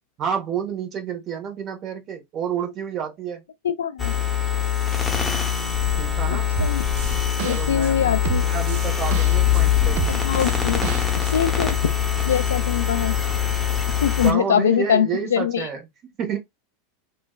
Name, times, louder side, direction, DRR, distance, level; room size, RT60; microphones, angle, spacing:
voice 1, 0.2-3.4 6.0-6.5 7.5-10.0 14.2-16.4, right 7 dB, 35° right, 1.1 m, -30 dB
voice 2, 3.6-4.1 6.3-6.8 7.4-8.5 10.1-10.8 11.3-11.9 12.3-13.1 14.0-15.7, left 8 dB, 70° left, 0.3 m, -23 dB
sound 1, 4.0-14.3, left 10 dB, 10° left, 0.8 m, -23 dB
sound 2, 6.6-7.9 8.2-9.6 10.0-11.3, right 14 dB, 55° right, 0.4 m, -30 dB
3.2 x 2.2 x 2.2 m
figure-of-eight pair, 85°, 0 cm